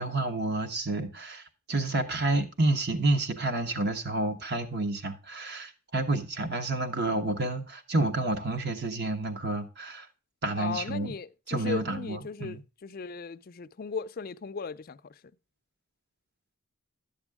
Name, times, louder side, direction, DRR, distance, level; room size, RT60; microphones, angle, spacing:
voice 1, 0.0-10.1 10.4-11.1 11.5-12.6, right 2 dB, 50° right, 1.2 m, -29 dB
voice 2, 10.5-15.1, left 5 dB, 45° left, 0.4 m, -37 dB
11.5 x 7.1 x 3.5 m
head